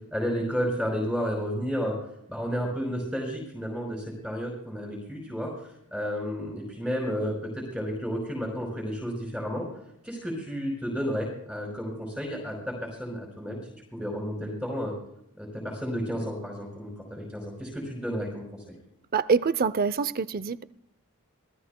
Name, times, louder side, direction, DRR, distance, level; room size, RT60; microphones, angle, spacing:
voice 1, 0.1-2.0 2.3-5.5 5.9-9.7 10.0-13.6 13.9-14.9 15.4-18.8, equal, ahead, 5.1 m, -32 dB
voice 2, 19.1-20.6, right 5 dB, 45° right, 0.6 m, -25 dB
27.0 x 18.0 x 2.2 m
head